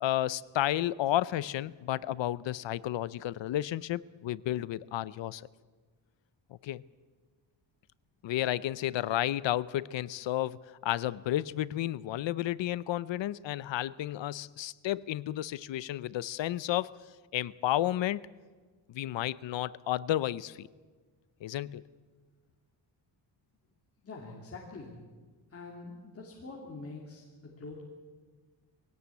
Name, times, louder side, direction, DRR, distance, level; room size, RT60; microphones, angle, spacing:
voice 1, 0.0-5.4 6.6-6.8 8.2-16.9 17.3-18.2 18.9-20.7 21.4-21.8, left 13 dB, 70° left, 19 dB, 0.7 m, -32 dB
voice 2, 24.0-25.0 25.5-27.8, left 3 dB, 30° left, -2 dB, 2.5 m, -45 dB
21.0 x 17.5 x 8.4 m, 1.4 s
wide cardioid pair, 170°, 46 cm